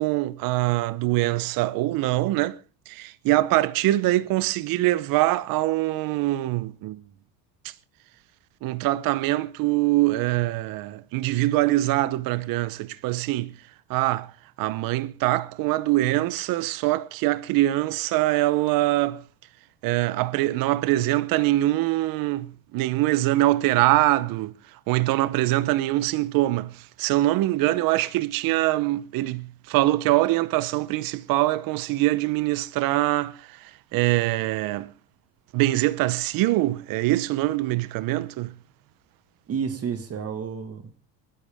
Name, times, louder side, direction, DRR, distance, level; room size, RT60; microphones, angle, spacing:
voice 1, 0.0-2.6 2.9-7.0 8.6-13.5 13.9-14.3 14.6-19.2 19.8-24.5 24.9-33.6 33.9-34.9 35.5-38.5, right 17 dB, 55° right, 0.8 m, -23 dB
voice 2, 39.5-41.0, right 6 dB, 35° right, 1.7 m, -31 dB
26.5 x 10.5 x 3.5 m
cardioid pair, 135°, 41 cm